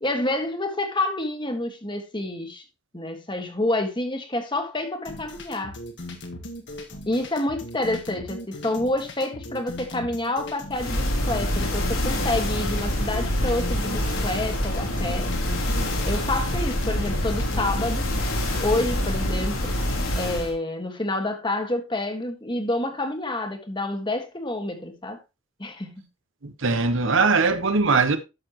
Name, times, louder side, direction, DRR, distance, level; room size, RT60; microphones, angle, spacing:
voice 1, 0.0-2.6 2.9-5.8 7.1-15.3 16.0-18.1 18.6-19.7 20.2-25.2 25.6-25.9, left 2 dB, 20° left, 1.7 m, -28 dB
sound 1, 5.0-17.9, left 1 dB, 55° left, 1.9 m, -39 dB
sound 2, 10.7-20.5, left 1 dB, 70° left, 3.9 m, -26 dB
voice 2, 26.4-28.2, right 4 dB, 60° right, 1.1 m, -21 dB
12.0 x 6.8 x 3.0 m
head